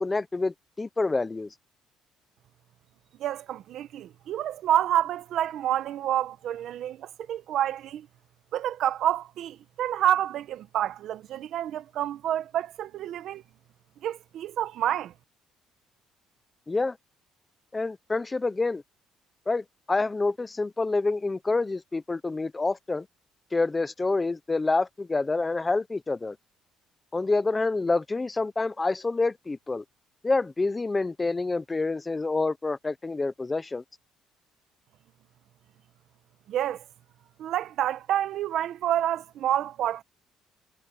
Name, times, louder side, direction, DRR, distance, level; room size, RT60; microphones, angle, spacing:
voice 1, 0.0-1.5 16.7-17.0 17.7-18.8 19.5-23.1 23.5-26.4 27.1-29.8 30.2-33.8, left 3 dB, 15° left, 0.6 m, -27 dB
voice 2, 3.2-8.1 8.5-13.4 14.0-15.1 36.5-36.8 37.4-40.0, right 11 dB, 55° right, 1.0 m, -28 dB
cardioid pair, 160°, 0 cm